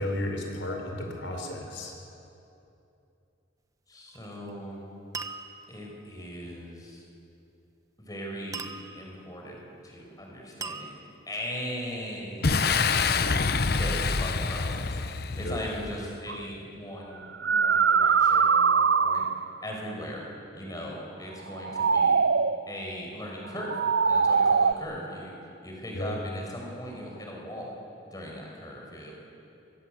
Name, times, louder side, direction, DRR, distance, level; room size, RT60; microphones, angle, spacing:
voice 1, 0.0-1.9 15.3-15.6 25.9-26.1, left 1 dB, 90° left, 2 dB, 5.1 m, -33 dB
voice 2, 3.9-4.8 5.7-7.0 8.0-8.7 8.9-10.9 11.3-15.0 15.3-19.2 19.6-20.2 20.5-22.2 22.7-23.7 24.0-25.3 25.6-27.7 28.1-29.1, equal, 20° left, -1 dB, 5.7 m, -39 dB
Glass Ding, 4.1-4.5 5.1-5.9 8.5-9.2 10.6-11.4, right 4 dB, 20° right, 1.0 m, -39 dB
Boom, 12.4-16.0, left 4 dB, 55° left, 0.8 m, -26 dB
sound 1, 16.3-16.4 17.2-19.6 21.5-22.6 23.6-24.7, right 5 dB, 70° right, 0.6 m, -22 dB
28.5 x 23.5 x 8.0 m, 2.8 s
head